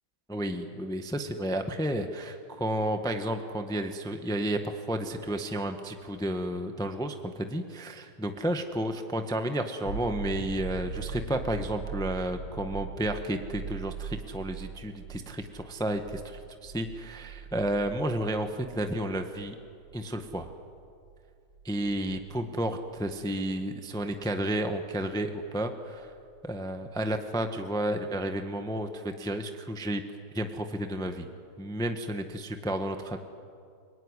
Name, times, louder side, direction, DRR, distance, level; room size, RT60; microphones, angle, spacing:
voice 1, 0.3-19.6 19.9-20.5 21.6-26.1 26.4-30.0 30.3-31.3 31.6-33.2, right 1 dB, ahead, 6 dB, 1.1 m, -32 dB
sound 1, 9.9-23.4 26.1-26.2, right 6 dB, 70° right, 3.2 m, -41 dB
30.0 x 20.0 x 9.9 m, 2.4 s
omnidirectional pair, 2.2 m